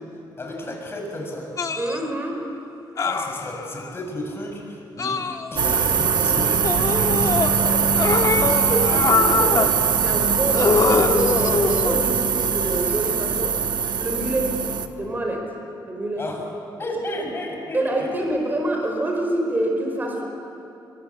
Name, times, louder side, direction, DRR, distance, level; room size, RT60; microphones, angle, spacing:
voice 1, 0.4-1.5 3.0-5.2 5.5-8.5 16.2-16.4 16.8-18.1, left 1 dB, 30° left, 1 dB, 6.6 m, -33 dB
sound 1, 1.6-2.0 3.0-3.9 5.0-5.8 6.6-7.5 8.0-9.7 10.5-12.1 13.2-13.4, left 5 dB, 45° left, 1.6 m, -23 dB
voice 2, 1.8-2.4 8.7-13.7 14.0-14.6 14.9-15.5 15.8-16.3 17.2-17.3 17.7-20.2, right 1 dB, 20° right, 1 dB, 4.9 m, -26 dB
sound 2, 5.6-14.9, right 6 dB, 65° right, 1.5 m, -21 dB
27.5 x 23.5 x 8.5 m, 2.9 s
wide cardioid pair, 130°, 8 cm